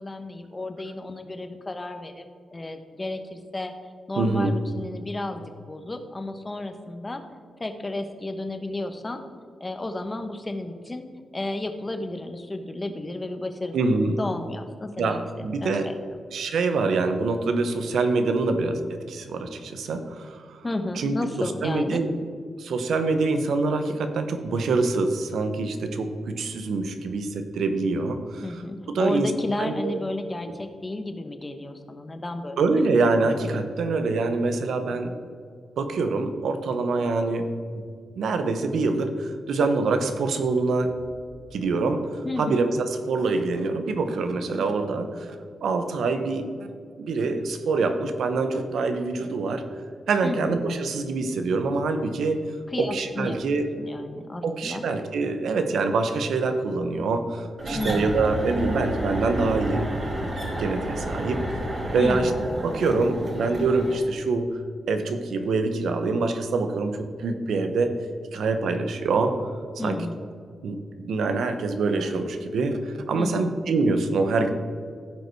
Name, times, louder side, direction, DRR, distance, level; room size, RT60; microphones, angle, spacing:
voice 1, 0.0-2.2 2.5-3.7 4.1-7.2 7.6-9.2 9.6-11.1 11.3-13.8 14.2-15.2 15.6-16.0 20.6-22.0 28.4-32.6 42.2-42.6 50.2-50.6 52.7-54.9 57.7-58.1 61.9-62.4 69.8-70.2 73.1-73.5, left 2 dB, 25° left, 7 dB, 1.1 m, -32 dB
voice 2, 4.2-4.5 13.7-14.2 15.0-15.9 16.3-20.6 21.0-22.1 22.6-28.6 28.9-29.3 29.6-30.0 32.6-35.2 35.8-37.8 38.2-41.0 41.5-45.4 45.6-46.5 47.0-49.6 50.1-52.5 52.8-53.7 54.4-59.9 60.6-61.4 61.9-62.3 62.6-64.6 64.9-68.0 68.3-69.4 69.8-70.0 70.6-74.5, right 3 dB, 80° right, 7 dB, 0.9 m, -25 dB
sound 1, 57.6-64.0, equal, 40° right, 2.8 m, -30 dB
15.5 x 5.2 x 4.7 m, 2.1 s
cardioid pair, 85°, 0 cm